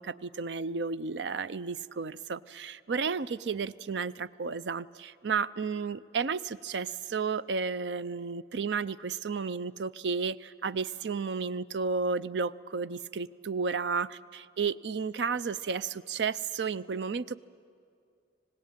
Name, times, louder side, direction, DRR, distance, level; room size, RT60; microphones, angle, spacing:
voice 1, 0.0-17.4, right 5 dB, 80° right, 17 dB, 0.5 m, -32 dB
26.0 x 18.0 x 9.0 m, 2.3 s
head